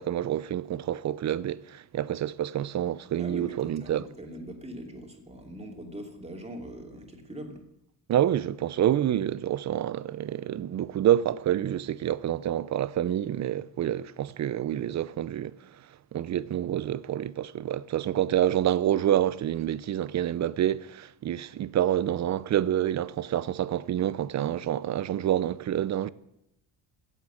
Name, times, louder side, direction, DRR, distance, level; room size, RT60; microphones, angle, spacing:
voice 1, 0.0-4.0 8.1-15.6 16.1-26.1, right 11 dB, 40° right, 0.6 m, -27 dB
voice 2, 3.2-7.6, equal, 15° right, 2.9 m, -41 dB
15.0 x 8.1 x 8.5 m
cardioid pair, 120°, 43 cm